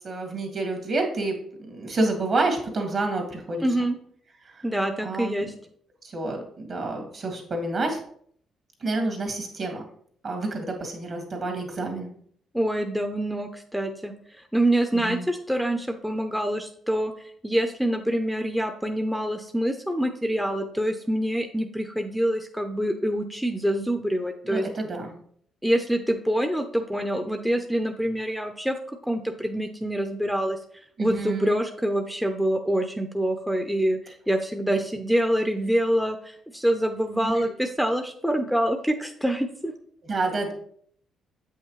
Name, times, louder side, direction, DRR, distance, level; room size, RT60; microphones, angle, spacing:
voice 1, 0.0-1.4 1.7-3.7 4.4-4.6 5.0-5.5 6.0-8.0 8.8-9.8 10.2-12.1 14.9-15.3 24.4-25.2 31.0-31.6 34.7-34.8 37.2-37.3 40.0-40.5, right 2 dB, 50° right, 3 dB, 1.9 m, -29 dB
voice 2, 3.6-4.0 4.6-5.5 12.5-24.7 25.6-30.6 31.0-39.7, right 1 dB, 5° right, 6 dB, 0.6 m, -26 dB
7.7 x 5.6 x 3.1 m, 0.62 s
cardioid pair, 90°, 0 cm